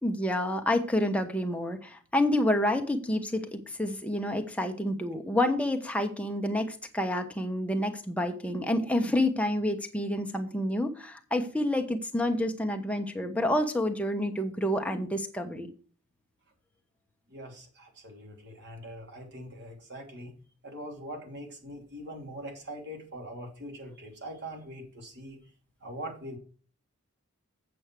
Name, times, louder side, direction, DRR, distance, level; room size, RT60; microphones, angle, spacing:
voice 1, 0.0-15.7, left 1 dB, 5° left, 4 dB, 1.1 m, -28 dB
voice 2, 17.3-20.3 20.6-25.4 25.8-26.4, right 1 dB, 50° right, 2 dB, 2.8 m, -42 dB
8.6 x 6.3 x 6.0 m, 0.39 s
head